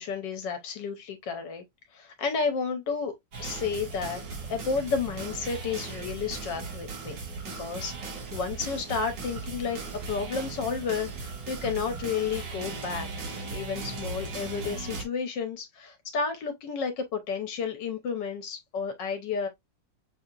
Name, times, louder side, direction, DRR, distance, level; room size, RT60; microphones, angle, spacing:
voice 1, 0.0-1.6 1.9-3.1 3.4-4.2 4.5-7.2 7.6-9.8 10.1-13.1 13.5-19.5, left 5 dB, 75° left, 1.4 m, -31 dB
sound 1, 3.3-15.0, right 4 dB, 75° right, 2.1 m, -37 dB
6.3 x 2.8 x 2.4 m
omnidirectional pair, 2.0 m